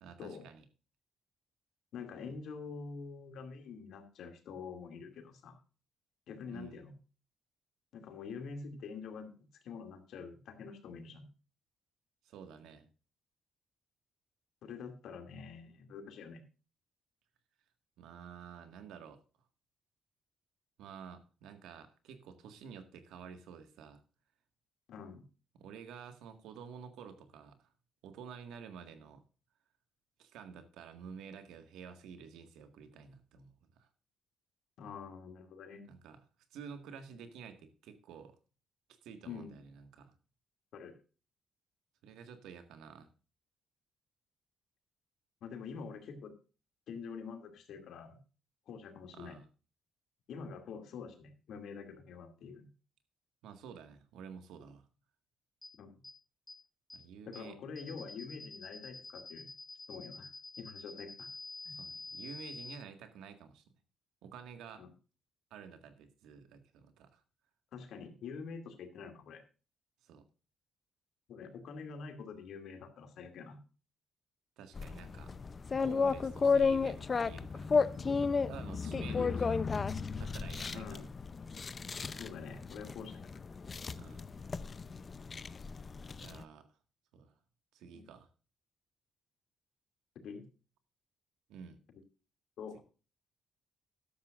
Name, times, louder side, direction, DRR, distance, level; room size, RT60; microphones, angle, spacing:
voice 1, 0.0-0.7 6.5-6.8 12.2-12.9 18.0-19.2 20.8-24.0 25.5-27.7 28.0-29.2 30.2-33.9 35.8-36.2 36.5-38.4 38.9-40.1 42.0-43.1 49.1-49.5 53.4-54.9 56.9-57.6 61.7-63.6 64.2-64.8 65.5-67.2 70.0-70.2 74.6-75.4 75.8-77.8 78.5-79.6 80.1-81.1 83.9-84.3 86.2-86.7 87.1-87.3 87.7-88.3 91.5-91.8, right 7 dB, 85° right, 8 dB, 1.8 m, -50 dB
voice 2, 1.9-5.6 6.3-6.9 7.9-11.3 14.6-16.4 24.9-25.2 34.8-35.8 39.3-39.5 40.7-41.0 45.4-46.3 46.9-48.2 48.7-49.4 50.3-52.7 55.8-56.0 57.3-59.5 59.9-60.3 60.6-61.3 61.6-61.8 64.7-64.9 67.7-69.4 71.3-73.6 77.7-78.3 78.8-79.5 80.7-81.1 82.2-83.4 87.9-88.1 90.2-90.5 92.6-92.8, left 5 dB, 75° left, 6 dB, 2.5 m, -46 dB
sound 1, 55.6-55.7 56.0-56.1 56.5-56.6 56.9-57.0 57.3-57.4 57.7-62.7, left 3 dB, 10° left, 2.3 m, -47 dB
sound 2, 74.7-86.4, left 5 dB, 35° left, 0.6 m, -33 dB
13.5 x 11.5 x 2.5 m, 0.35 s
cardioid pair, 90°, 0 cm